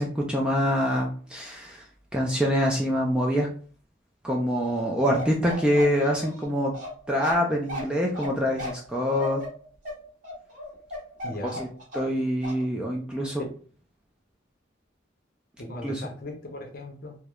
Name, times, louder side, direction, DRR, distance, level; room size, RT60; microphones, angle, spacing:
voice 1, 0.0-1.8 2.1-3.5 4.2-6.7 7.1-9.4 11.6-11.7 11.9-13.4 15.8-16.0, equal, 5° right, -2 dB, 0.3 m, -25 dB
Bark, 5.2-12.2 12.4-12.6, left 1 dB, 40° right, 1.0 m, -37 dB
voice 2, 11.2-11.6 13.4-13.5 15.6-17.2, left 1 dB, 50° left, 1 dB, 0.6 m, -37 dB
3.0 x 2.0 x 2.3 m, 0.43 s
head